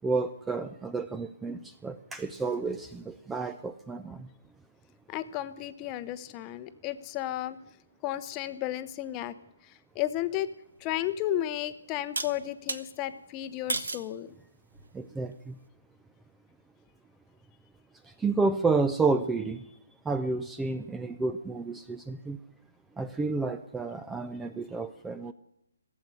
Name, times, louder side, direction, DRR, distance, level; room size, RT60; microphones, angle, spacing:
voice 1, 0.0-4.3 14.9-15.6 18.2-19.7 20.1-22.4 23.0-25.3, right 3 dB, 5° right, 10 dB, 0.4 m, -30 dB
voice 2, 5.1-7.6 8.0-9.3 9.6-10.5 10.8-14.3, left 13 dB, 20° left, 12 dB, 0.8 m, -33 dB
sound 1, 10.8-10.9 12.2-12.8 13.7-14.1 14.7-15.1, right 3 dB, 85° right, 1.3 m, -33 dB
16.0 x 7.8 x 9.8 m, 0.83 s
hypercardioid pair, 155°, 0 cm